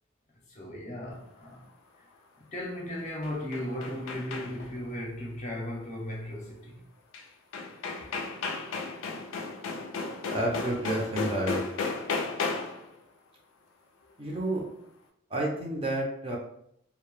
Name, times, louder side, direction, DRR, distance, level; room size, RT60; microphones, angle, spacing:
voice 1, 0.5-1.6 2.4-6.8, left 1 dB, 35° left, 0.6 m, -36 dB
sound 1, 3.0-4.8 7.1-7.2 7.5-12.9, left 4 dB, 90° left, 0.4 m, -34 dB
voice 2, 10.3-11.6 14.2-14.7 15.3-16.4, right 1 dB, 30° right, 0.5 m, -30 dB
2.1 x 2.0 x 3.0 m
head